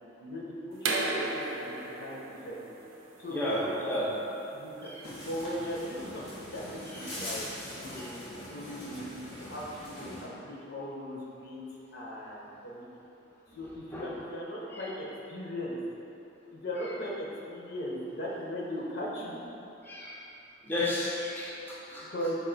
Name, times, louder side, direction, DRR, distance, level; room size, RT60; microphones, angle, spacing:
voice 1, 0.2-2.6 3.2-4.1 4.5-4.9 5.2-7.5 7.7-11.6 11.9-12.9 13.5-15.8 16.5-19.4 22.1-22.3, equal, 55° left, -4 dB, 0.7 m, -38 dB
sound 1, 0.8-6.4, right 2 dB, 85° right, 0.5 m, -36 dB
voice 2, 3.3-4.1 4.8-5.0 6.9-7.0 7.9-8.1 13.9-14.1 14.7-14.9 19.8-20.2 20.6-22.0, left 1 dB, 10° left, -7 dB, 0.5 m, -33 dB
sound 2, 5.0-10.2, equal, 90° left, 1.2 m, -42 dB
4.2 x 2.5 x 3.9 m, 2.9 s
head